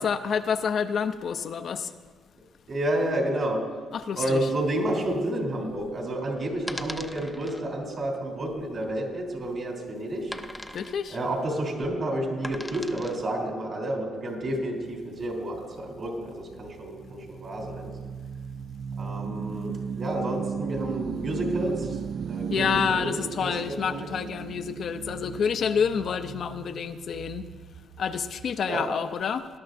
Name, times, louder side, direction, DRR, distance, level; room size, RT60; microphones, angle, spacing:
voice 1, 0.0-1.9 3.9-4.4 10.7-11.2 22.5-27.5 28.0-29.5, left 7 dB, 60° left, 9 dB, 0.6 m, -28 dB
voice 2, 2.7-3.6 4.1-10.3 11.1-18.0 19.0-22.0 22.2-24.1 28.6-28.8, right 1 dB, 50° right, 0 dB, 3.3 m, -30 dB
sound 1, 5.7-13.3, left 1 dB, 5° left, 0.6 m, -41 dB
sound 2, 14.7-28.6, right 7 dB, 65° right, 0.4 m, -37 dB
19.5 x 11.5 x 2.6 m, 1.5 s
cardioid pair, 90°, 0 cm